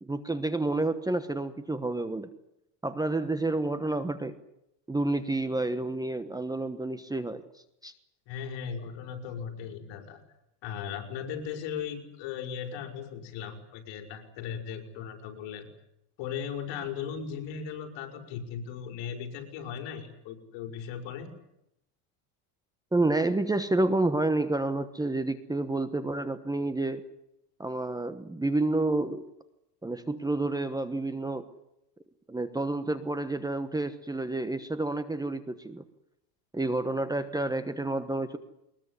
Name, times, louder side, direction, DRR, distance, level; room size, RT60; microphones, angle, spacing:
voice 1, 0.0-2.3 2.8-4.4 4.9-7.4 7.8-7.9 22.9-27.0 27.6-29.2 29.8-31.4 32.3-35.8 36.5-38.4, right 2 dB, 10° right, 11 dB, 1.2 m, -29 dB
voice 2, 8.3-10.2 10.6-15.7 16.2-21.3, left 7 dB, 60° left, 5 dB, 5.6 m, -37 dB
22.0 x 21.0 x 9.8 m, 0.82 s
cardioid pair, 140°, 49 cm